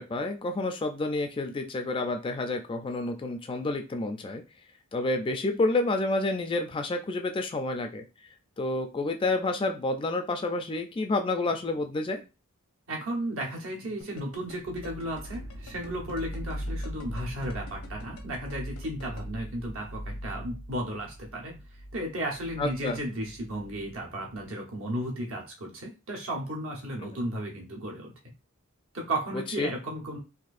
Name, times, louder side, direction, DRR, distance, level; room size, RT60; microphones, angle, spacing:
voice 1, 0.0-4.4 4.9-8.1 8.6-12.2 22.6-23.0 29.6-29.7, left 2 dB, 25° left, 5 dB, 0.3 m, -29 dB
voice 2, 12.9-21.6 21.9-28.1 28.9-30.2, right 1 dB, 65° right, 0 dB, 1.0 m, -34 dB
sound 1, 14.0-19.2, left 4 dB, 85° left, 0.7 m, -47 dB
sound 2, 14.6-24.4, equal, 80° right, 0.6 m, -41 dB
4.1 x 2.6 x 2.5 m, 0.29 s
head